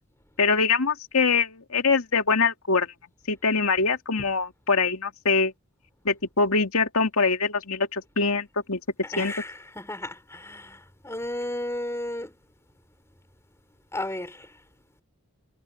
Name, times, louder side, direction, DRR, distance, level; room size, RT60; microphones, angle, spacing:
voice 1, 0.4-2.9 3.3-5.5 6.0-8.8 9.2-9.3, left 4 dB, 85° left, 2.2 m, -23 dB
voice 2, 9.1-10.8 11.0-12.3 13.9-14.4, left 1 dB, 15° left, 3.9 m, -33 dB
head